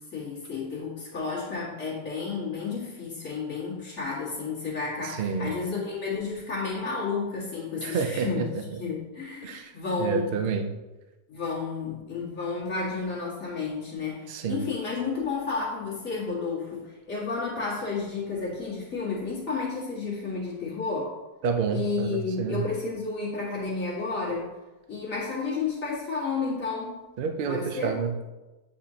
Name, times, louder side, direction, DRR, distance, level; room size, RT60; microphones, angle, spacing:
voice 1, 0.0-8.4 8.8-10.4 11.3-21.1 21.7-24.5 24.9-27.0 27.5-27.9, left 4 dB, 55° left, -8 dB, 2.2 m, -31 dB
voice 2, 5.0-5.5 7.8-8.5 9.4-9.7 10.0-10.7 14.3-14.6 21.4-22.6 27.2-28.3, right 5 dB, 80° right, 5 dB, 0.4 m, -29 dB
8.5 x 4.3 x 2.8 m, 1.1 s
omnidirectional pair, 1.7 m